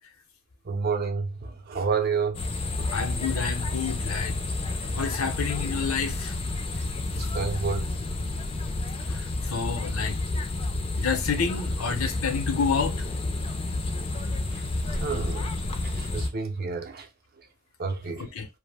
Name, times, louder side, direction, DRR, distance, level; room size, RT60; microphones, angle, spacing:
voice 1, 0.6-2.4 2.8-2.9 7.1-7.9 14.5-14.6 14.9-15.5 15.8-17.1 17.8-18.3, right 5 dB, 45° right, 0.5 m, -29 dB
sound 1, 2.3-16.3, left 2 dB, 25° left, 0.4 m, -30 dB
voice 2, 2.9-4.4 4.9-6.3 9.1-10.2 11.0-13.0 18.2-18.5, left 5 dB, 80° left, 0.7 m, -29 dB
2.6 x 2.0 x 3.3 m
head